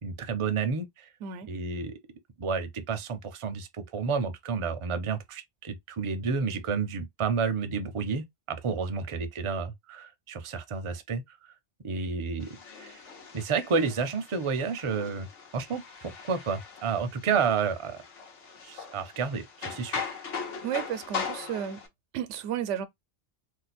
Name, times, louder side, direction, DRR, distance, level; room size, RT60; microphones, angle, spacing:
voice 1, 0.0-1.1 1.5-1.9 2.4-11.4 11.8-12.5 12.8-13.0 13.3-15.3 15.5-18.0 18.6-20.0, right 5 dB, 40° right, 0.5 m, -30 dB
voice 2, 1.2-1.5 20.6-21.8 22.1-22.9, right 9 dB, 90° right, 0.9 m, -33 dB
sound 1, 12.4-21.9, left 5 dB, 90° left, 1.2 m, -40 dB
2.7 x 2.2 x 4.1 m
omnidirectional pair, 1.2 m